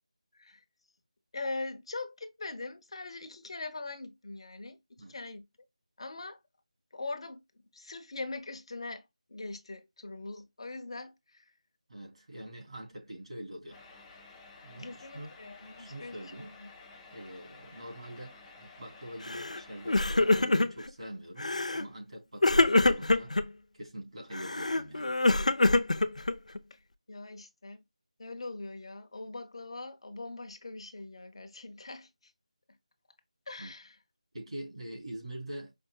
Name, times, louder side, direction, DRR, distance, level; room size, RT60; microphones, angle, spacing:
voice 1, 1.3-5.5 6.0-6.4 6.9-7.4 7.7-11.5 14.7-16.7 26.7-26.8 27.1-27.8 28.2-32.3 33.5-34.0, left 3 dB, 50° left, 1.0 m, -42 dB
voice 2, 11.9-13.8 14.6-15.3 15.8-16.5 17.1-23.4 23.7-25.2 33.6-33.7 34.3-35.7, right 1 dB, 60° right, 2.9 m, -44 dB
sound 1, 13.7-20.4, left 3 dB, 10° left, 0.5 m, -53 dB
Crying sobbing, 19.3-19.6 19.9-20.9 21.4-21.9 22.4-23.4 24.3-26.6, left 2 dB, 85° left, 0.6 m, -25 dB
5.3 x 2.6 x 2.3 m
figure-of-eight pair, 170°, 4 cm